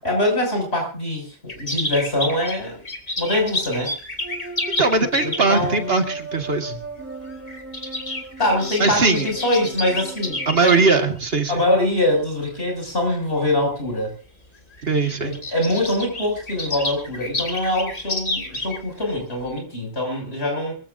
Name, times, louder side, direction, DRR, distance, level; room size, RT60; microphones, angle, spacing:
voice 1, 0.0-2.8 3.2-3.9 5.2-6.2 6.7-6.8 8.4-10.7 11.0-11.1 11.5-14.1 15.2-20.8, left 1 dB, 85° left, 1 dB, 6.8 m, -23 dB
sound 1, 1.5-5.7 6.8-7.0 7.3-11.0 11.6-12.0 12.6-12.7 13.0-13.1 14.1-14.2 14.4-14.5 14.7-19.1 19.5-19.6, left 1 dB, 40° left, 2.4 m, -29 dB
sound 2, 4.2-10.6, right 3 dB, 10° right, 3.7 m, -37 dB
voice 2, 4.8-6.7 8.8-9.3 10.5-11.6 14.8-15.4, right 4 dB, 70° right, 6 dB, 1.9 m, -20 dB
25.0 x 15.0 x 2.6 m, 0.37 s
omnidirectional pair, 1.0 m